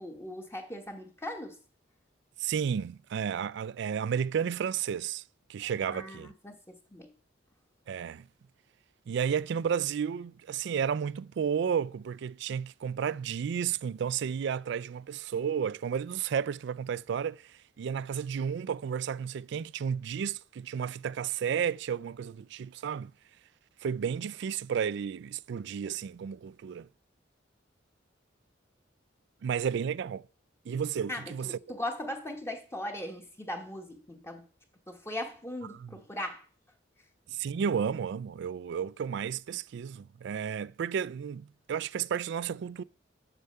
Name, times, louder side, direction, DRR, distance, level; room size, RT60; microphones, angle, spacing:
voice 1, 0.0-1.5 5.6-7.1 31.1-34.4 34.9-36.4, left 1 dB, 15° left, 1.1 m, -39 dB
voice 2, 2.4-5.2 5.5-6.3 7.9-8.3 9.1-23.1 23.8-26.9 29.4-30.3 30.7-31.6 35.8-36.0 37.3-42.8, right 7 dB, 65° right, 0.3 m, -32 dB
8.2 x 5.6 x 6.6 m
head